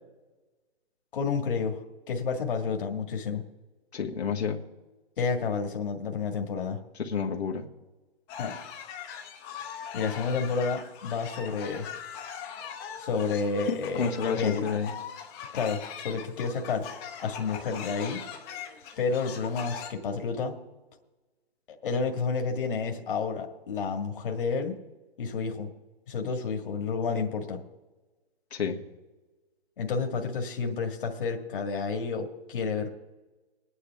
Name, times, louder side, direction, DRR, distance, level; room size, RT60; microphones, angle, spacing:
voice 1, 1.1-1.8 2.1-3.4 5.2-6.8 8.4-8.5 9.9-11.9 13.0-14.7 15.5-16.9 17.2-18.2 19.0-20.5 21.8-24.8 25.2-25.7 26.1-27.6 29.8-32.9, left 5 dB, 55° left, 3 dB, 1.8 m, -30 dB
voice 2, 3.9-4.6 6.9-7.6 13.7-14.9 28.5-28.8, left 6 dB, 85° left, 0 dB, 1.7 m, -29 dB
sound 1, 8.3-19.9, left 8 dB, 20° left, 1.0 m, -41 dB
21.0 x 9.8 x 3.5 m, 1.2 s
hypercardioid pair, 160°, 31 cm